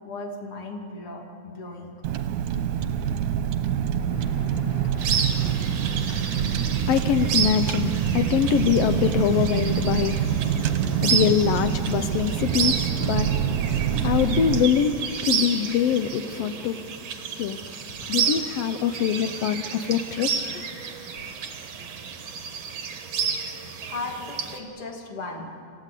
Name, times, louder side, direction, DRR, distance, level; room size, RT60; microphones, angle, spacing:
voice 1, 0.0-2.0 23.8-25.5, left 2 dB, 45° left, 3.3 m, -36 dB
Car, 2.0-14.7, right 9 dB, 75° right, 2.4 m, -26 dB
voice 2, 4.1-16.8 17.3-17.6 18.1-20.6, left 8 dB, 90° left, 1.4 m, -25 dB
sound 1, 5.0-24.6, right 6 dB, 55° right, 2.4 m, -31 dB
28.0 x 15.5 x 8.3 m
omnidirectional pair, 3.7 m